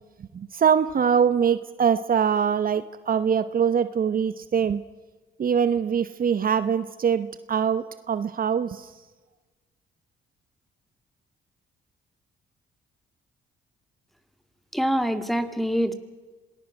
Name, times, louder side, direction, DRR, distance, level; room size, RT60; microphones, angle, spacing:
voice 1, 0.3-4.8 5.4-8.9, right 7 dB, 45° right, 13 dB, 1.0 m, -23 dB
voice 2, 14.7-15.9, equal, ahead, 10 dB, 2.1 m, -25 dB
26.5 x 19.0 x 6.2 m, 1.3 s
cardioid pair, 90°, 20 cm